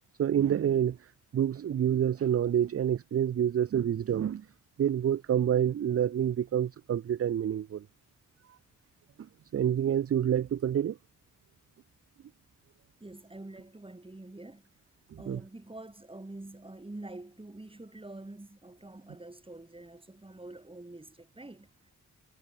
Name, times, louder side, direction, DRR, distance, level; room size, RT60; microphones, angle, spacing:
voice 1, 0.2-1.0 1.3-4.5 4.8-7.8 9.5-11.0 15.1-15.4, right 9 dB, 45° right, 0.5 m, -27 dB
voice 2, 13.0-14.7 15.2-21.9, right 2 dB, 15° right, 2.5 m, -46 dB
cardioid pair, 70°, 32 cm